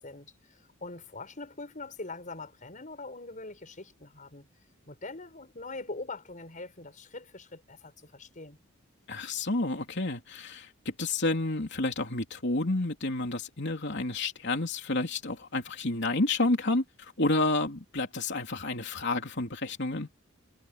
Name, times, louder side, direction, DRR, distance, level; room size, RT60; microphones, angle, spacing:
voice 1, 0.0-4.5 4.9-8.6, left 3 dB, 40° left, 5.7 m, -43 dB
voice 2, 9.1-20.1, left 2 dB, 60° left, 3.4 m, -30 dB
head